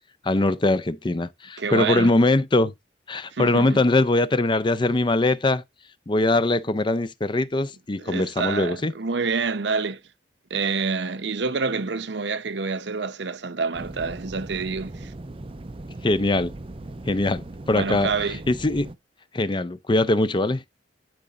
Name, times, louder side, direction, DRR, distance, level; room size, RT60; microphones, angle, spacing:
voice 1, 0.2-2.7 3.1-5.6 6.1-8.9 16.0-16.5 17.1-18.1 18.5-18.9 19.3-20.6, left 2 dB, 25° left, 0.5 m, -22 dB
voice 2, 1.6-2.1 3.3-3.8 8.0-10.0 10.5-15.1 17.7-18.4, right 4 dB, 70° right, 0.8 m, -27 dB
sound 1, 13.7-18.9, right 2 dB, 30° right, 0.6 m, -38 dB
12.0 x 5.1 x 2.5 m
head